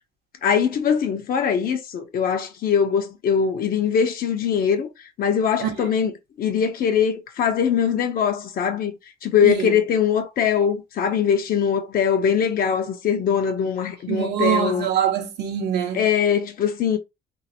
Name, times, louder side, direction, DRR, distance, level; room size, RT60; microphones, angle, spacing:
voice 1, 0.4-4.9 5.2-9.0 9.2-14.9 15.9-17.0, left 7 dB, 60° left, 1.0 m, -22 dB
voice 2, 9.4-9.8 14.1-16.0, right 9 dB, 75° right, 1.3 m, -23 dB
3.7 x 3.1 x 3.0 m
cardioid pair, 110°, 17 cm